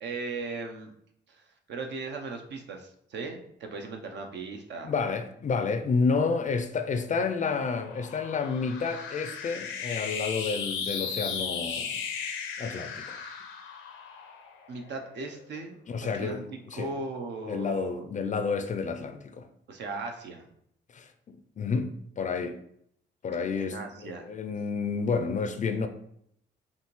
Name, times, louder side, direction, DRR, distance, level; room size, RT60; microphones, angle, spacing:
voice 1, 0.0-0.9 1.3-4.9 14.7-18.0 19.7-20.5 23.6-24.3, right 3 dB, 65° right, 0.8 m, -38 dB
voice 2, 4.8-12.0 12.6-13.2 15.9-16.9 17.5-19.5 20.9-21.1 21.6-21.9 22.2-22.6 23.2-25.9, left 5 dB, 40° left, 0.5 m, -30 dB
sound 1, 6.8-15.4, left 6 dB, 85° left, 0.7 m, -36 dB
5.4 x 2.6 x 3.1 m
cardioid pair, 90°, 20 cm